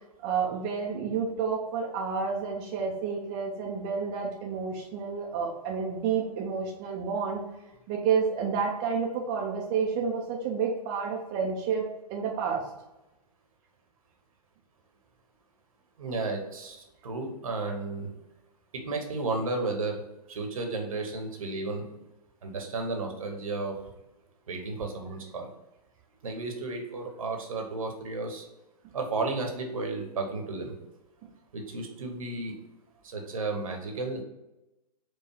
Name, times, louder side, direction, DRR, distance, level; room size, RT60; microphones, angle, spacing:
voice 1, 0.2-7.4 7.9-11.8 12.1-12.7, right 6 dB, 25° right, -1 dB, 0.6 m, -30 dB
voice 2, 16.0-18.1 18.7-20.0 20.3-21.9 22.4-23.8 24.5-25.5 26.2-28.5 28.9-30.7 31.5-32.6 33.0-34.2, right 3 dB, 60° right, 3 dB, 1.1 m, -33 dB
4.7 x 2.4 x 4.5 m, 0.95 s
figure-of-eight pair, 115°, 20 cm